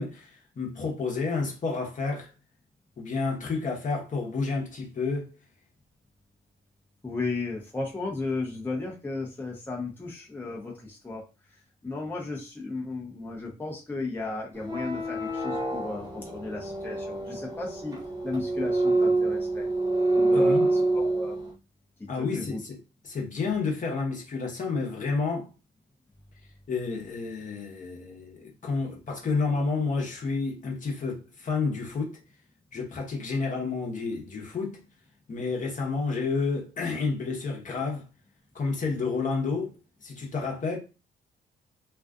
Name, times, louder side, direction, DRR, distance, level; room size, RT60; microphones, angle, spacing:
voice 1, 0.0-2.3 3.0-5.3 20.3-20.7 22.1-22.8 23.0-25.5 26.7-32.1 32.7-34.8 35.3-38.0 38.5-39.7 40.0-40.8, left 4 dB, 40° left, 0.9 m, -30 dB
voice 2, 7.0-11.2 11.8-17.9 18.2-19.7 20.1-21.4 22.2-22.6, left 3 dB, 10° left, 0.7 m, -34 dB
sound 1, 14.5-21.5, right 2 dB, 20° right, 0.9 m, -27 dB
2.4 x 2.3 x 2.3 m
cardioid pair, 90°, 20 cm